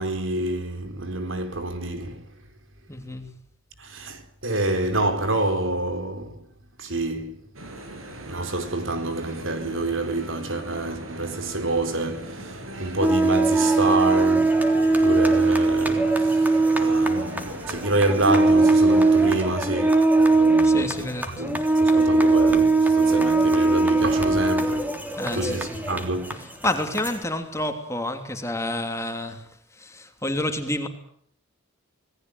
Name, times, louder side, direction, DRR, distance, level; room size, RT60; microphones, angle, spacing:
voice 1, 0.0-2.3 3.8-6.4 6.8-7.4 8.1-25.0 25.3-26.5, right 2 dB, 65° right, 4.5 m, -28 dB
voice 2, 2.9-3.3 20.6-22.0 25.2-25.8 26.4-30.9, left 1 dB, 15° left, 3.1 m, -30 dB
sound 1, 7.5-19.5, right 1 dB, 80° right, 7.2 m, -39 dB
sound 2, 13.0-27.1, right 3 dB, 10° right, 3.4 m, -20 dB
28.5 x 19.0 x 9.5 m
head